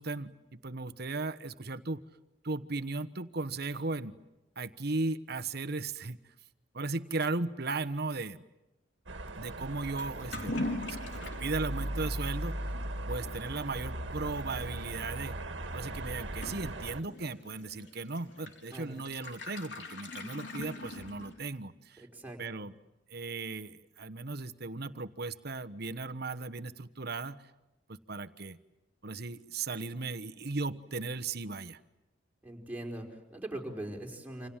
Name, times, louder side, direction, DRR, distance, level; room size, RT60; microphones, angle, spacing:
voice 1, 0.0-2.0 2.4-4.1 4.6-6.2 6.7-8.4 9.3-10.6 11.1-12.6 13.1-15.4 15.7-22.0 22.4-22.7 23.1-27.4 27.9-28.6 29.0-31.8, right 3 dB, 55° right, 11 dB, 1.2 m, -36 dB
sound 1, 9.1-17.0, right 1 dB, 75° right, 1.9 m, -38 dB
Toilet flush / Liquid, 10.0-21.6, left 1 dB, 70° left, 4.2 m, -43 dB
voice 2, 22.0-22.4 32.4-34.5, right 1 dB, 10° right, 0 dB, 4.8 m, -41 dB
29.0 x 27.0 x 7.4 m, 1.0 s
head